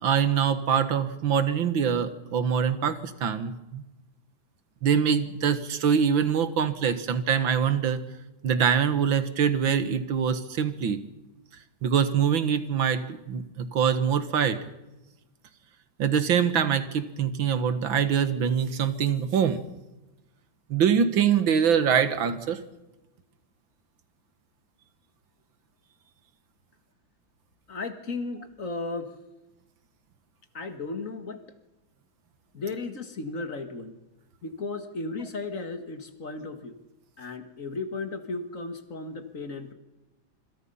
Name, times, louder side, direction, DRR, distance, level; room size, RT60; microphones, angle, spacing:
voice 1, 0.0-3.8 4.8-8.0 8.4-11.0 11.8-14.6 16.0-19.6 20.7-22.6, right 7 dB, 75° right, 11 dB, 2.2 m, -24 dB
voice 2, 27.7-29.1 30.5-31.4 32.5-33.9 34.4-36.8 37.2-39.7, left 3 dB, 40° left, 8 dB, 2.2 m, -35 dB
26.5 x 25.5 x 5.6 m, 1.0 s
omnidirectional pair, 2.2 m